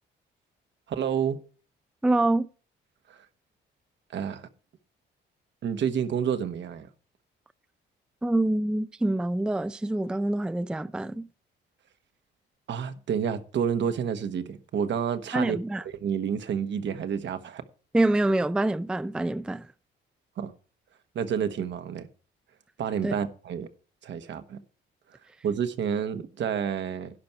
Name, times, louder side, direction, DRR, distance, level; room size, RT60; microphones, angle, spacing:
voice 1, 0.9-1.4 3.1-3.3 4.1-4.4 5.6-6.9 12.7-15.6 15.9-17.6 20.4-20.5 21.1-22.1 22.8-23.7 24.0-24.6 25.4-27.2, right 7 dB, 65° right, 1.3 m, -29 dB
voice 2, 2.0-2.5 8.2-11.3 15.3-15.8 17.9-19.7 23.0-23.1, right 2 dB, 5° right, 0.4 m, -26 dB
11.5 x 4.5 x 8.0 m
cardioid pair, 90°, 20 cm